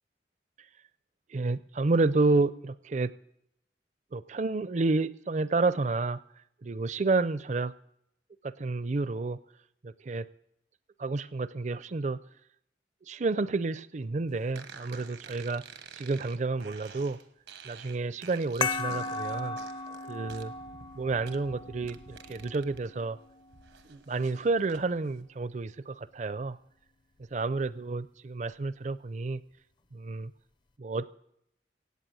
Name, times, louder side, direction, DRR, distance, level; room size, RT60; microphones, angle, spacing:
voice 1, 1.3-3.1 4.1-6.2 6.6-7.7 8.4-9.4 9.8-10.3 11.0-12.2 13.1-15.6 15.9-17.2 17.6-19.6 20.0-20.5 20.9-23.2 23.9-26.6 27.3-29.4 29.9-30.3 30.8-31.1, right 3 dB, 40° right, 17 dB, 0.5 m, -30 dB
sound 1, 14.5-22.9 23.2-24.8, right 5 dB, 85° right, 1.2 m, -49 dB
sound 2, 18.6-23.7, left 3 dB, 25° left, 0.5 m, -36 dB
16.5 x 8.6 x 7.7 m, 0.75 s
head